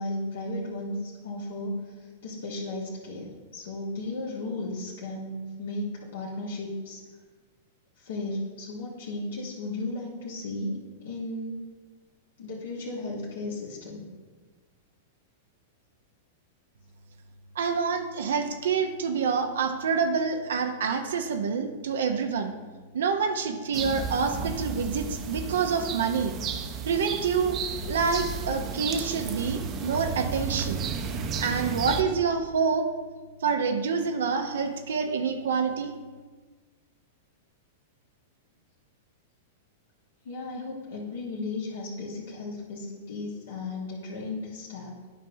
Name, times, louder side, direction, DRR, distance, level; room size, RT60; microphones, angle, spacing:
voice 1, 0.0-7.0 8.0-11.7 12.4-14.0 40.2-45.0, left 2 dB, 70° left, -5 dB, 1.4 m, -35 dB
voice 2, 17.5-22.5 22.9-26.3 26.8-27.6 27.9-30.8 31.4-32.9 33.4-35.9, right 5 dB, 70° right, 5 dB, 0.6 m, -27 dB
sound 1, 23.7-32.0, right 5 dB, 35° right, 0.7 m, -33 dB
11.5 x 5.4 x 2.7 m, 1.4 s
figure-of-eight pair, 100°, 0 cm